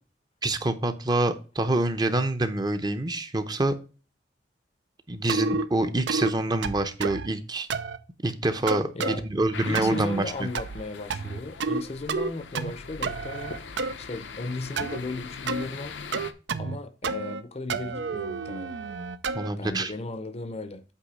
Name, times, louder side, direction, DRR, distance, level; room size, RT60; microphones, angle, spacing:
voice 1, 0.4-3.8 5.1-7.7 8.2-10.5 19.3-19.9, right 2 dB, 25° right, 0.7 m, -26 dB
sound 1, 5.3-5.7 6.1-6.3 6.6-7.3 7.7-8.0 8.7-9.2 9.7-10.1 10.5-10.8 11.1-11.8 12.1-12.7 13.0-13.9 14.8-15.0 15.5-15.7 16.1-16.8 17.0-17.4 17.7-19.5, right 4 dB, 75° right, 0.5 m, -30 dB
voice 2, 8.9-9.2 9.6-13.6 14.0-16.0 16.6-18.7 19.6-20.8, left 2 dB, 35° left, 0.6 m, -36 dB
sound 2, 9.5-16.3, left 5 dB, 85° left, 0.7 m, -42 dB
8.3 x 3.1 x 6.2 m
head